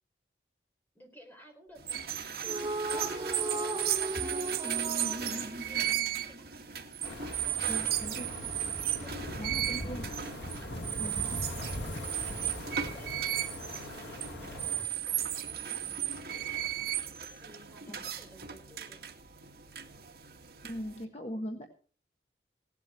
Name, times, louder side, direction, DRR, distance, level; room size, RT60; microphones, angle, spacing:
voice 1, 0.9-6.8 7.4-8.4 9.0-10.0 11.0-16.7 17.4-19.0, equal, 10° left, 2 dB, 4.3 m, -57 dB
sound 1, 1.8-21.0, right 11 dB, 60° right, 1.9 m, -35 dB
sound 2, 2.4-6.8, right 2 dB, 25° right, 1.3 m, -36 dB
sound 3, 7.0-14.8, left 1 dB, 90° left, 1.9 m, -41 dB
voice 2, 7.7-8.3 9.4-10.1 11.0-11.3 17.9-18.0 20.6-21.7, equal, 35° left, 3 dB, 1.4 m, -40 dB
17.0 x 12.0 x 4.5 m, 0.41 s
head